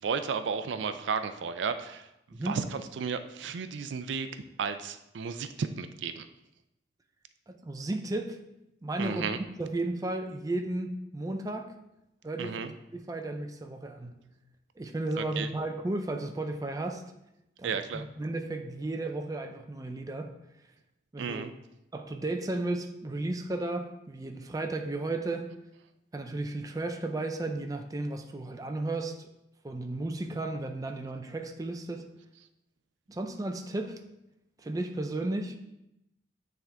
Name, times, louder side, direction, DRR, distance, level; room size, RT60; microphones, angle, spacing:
voice 1, 0.0-6.3 9.0-9.4 12.4-12.7 15.2-15.5 17.6-18.1 21.2-21.5, right 5 dB, 85° right, 10 dB, 0.4 m, -33 dB
voice 2, 7.5-8.4 8.8-9.3 9.6-11.8 12.2-12.5 12.9-14.2 14.8-17.0 17.6-20.3 21.1-21.4 21.9-25.5 26.1-29.3 29.6-32.1 33.1-34.0 34.6-35.6, right 2 dB, 20° right, 5 dB, 0.4 m, -34 dB
8.8 x 3.7 x 3.4 m, 0.87 s
head